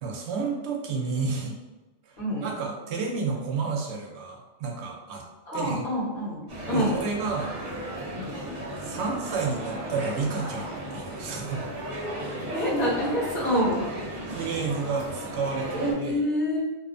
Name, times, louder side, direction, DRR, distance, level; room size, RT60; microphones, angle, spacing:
voice 1, 0.0-1.6 2.1-2.2 2.4-5.2 5.5-5.9 6.7-7.6 8.8-11.7 14.3-16.2, right 4 dB, 90° right, 1 dB, 0.9 m, -31 dB
voice 2, 5.5-7.0 8.1-8.4 12.5-13.8 15.8-16.6, equal, 60° left, -8 dB, 1.2 m, -27 dB
sound 1, 6.5-15.9, right 1 dB, 45° right, 0.8 m, -35 dB
2.7 x 2.0 x 2.5 m, 1.1 s
omnidirectional pair, 1.1 m